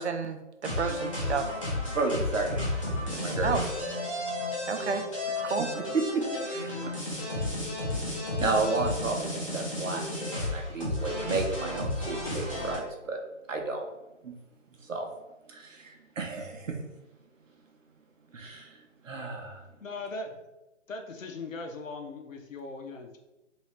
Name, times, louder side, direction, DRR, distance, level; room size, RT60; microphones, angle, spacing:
voice 1, 0.0-1.5 3.4-3.7 4.7-5.0 5.4-5.7, right 5 dB, 60° right, 7 dB, 0.5 m, -31 dB
sound 1, 0.6-12.8, left 1 dB, 25° left, 0.7 m, -32 dB
voice 2, 1.9-2.6 3.1-3.5 5.6-5.7 5.9-6.8 8.4-13.2 13.5-13.8 14.2-14.4 14.8-15.1 15.5-16.8 18.3-18.8 19.0-19.6, right 3 dB, 80° right, 2 dB, 0.9 m, -32 dB
voice 3, 19.8-20.4 20.9-23.2, left 3 dB, 90° left, 4 dB, 0.9 m, -39 dB
3.1 x 2.7 x 3.1 m, 1.0 s
hypercardioid pair, 175°, 38 cm